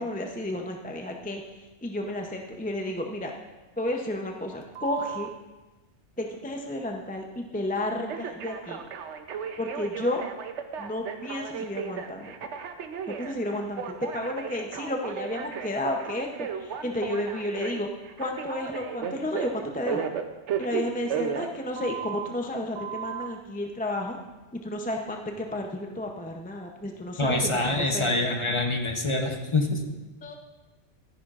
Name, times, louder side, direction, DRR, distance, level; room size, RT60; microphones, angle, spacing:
voice 1, 0.0-1.4 1.8-3.3 3.8-5.3 6.2-8.8 9.6-10.2 10.8-12.3 13.1-17.9 18.2-20.1 20.6-24.2 24.5-28.2 30.2-30.4, left 1 dB, 10° left, 2 dB, 0.5 m, -32 dB
Telephone, 4.7-5.3 8.1-22.3 22.7-23.3, right 7 dB, 85° right, 1.0 m, -35 dB
voice 2, 27.2-29.8, left 2 dB, 30° left, 3 dB, 0.9 m, -25 dB
14.0 x 10.0 x 2.5 m, 1.2 s
omnidirectional pair, 1.2 m